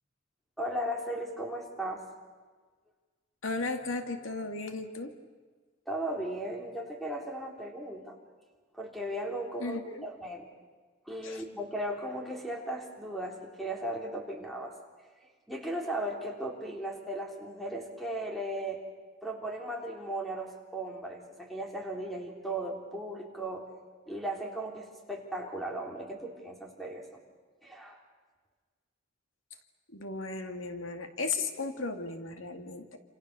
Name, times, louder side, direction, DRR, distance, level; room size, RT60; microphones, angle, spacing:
voice 1, 0.6-2.0 5.9-8.2 8.7-10.5 11.1-14.7 15.5-18.8 19.2-23.7 24.1-27.2 27.6-28.0, right 1 dB, ahead, 1 dB, 3.6 m, -36 dB
voice 2, 3.4-5.1 9.6-10.1 11.2-11.4 29.9-33.0, left 3 dB, 80° left, 6 dB, 2.1 m, -35 dB
28.5 x 27.5 x 6.9 m, 1.4 s
head